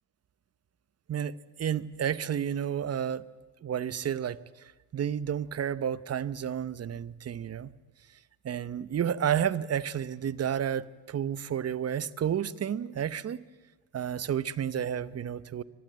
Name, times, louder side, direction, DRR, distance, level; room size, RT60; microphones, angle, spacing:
voice 1, 1.1-3.2 3.6-7.7 8.4-13.4 13.9-15.6, right 9 dB, 35° right, 17 dB, 0.9 m, -31 dB
24.5 x 19.0 x 8.9 m, 1.2 s
cardioid pair, 105°, 45 cm